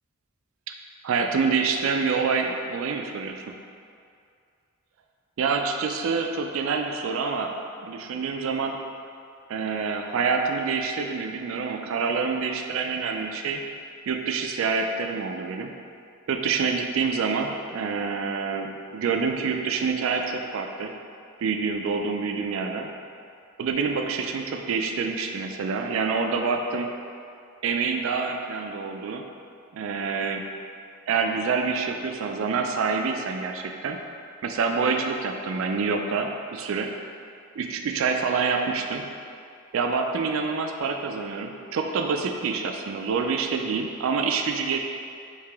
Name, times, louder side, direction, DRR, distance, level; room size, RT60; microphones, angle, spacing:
voice 1, 1.0-3.4 5.4-7.5 7.8-8.8 9.5-13.6 14.1-15.7 16.3-20.9 21.4-22.9 23.6-26.9 27.6-29.2 29.7-30.4 31.1-34.0 34.4-36.9 37.5-39.1 39.7-44.8, right 5 dB, 70° right, 4 dB, 0.3 m, -27 dB
4.8 x 2.8 x 3.4 m, 2.4 s
head